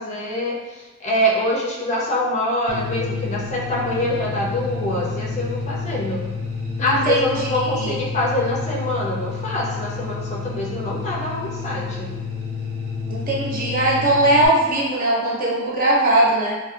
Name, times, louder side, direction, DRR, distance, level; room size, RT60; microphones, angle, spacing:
voice 1, 0.0-6.3 6.8-12.1, left 1 dB, 35° left, -4 dB, 0.4 m, -24 dB
sound 1, 2.7-14.5, left 4 dB, 80° right, 0.5 m, -29 dB
voice 2, 6.8-8.0 13.1-16.6, right 1 dB, 45° right, -5 dB, 0.6 m, -20 dB
2.5 x 2.1 x 2.4 m, 1.2 s
head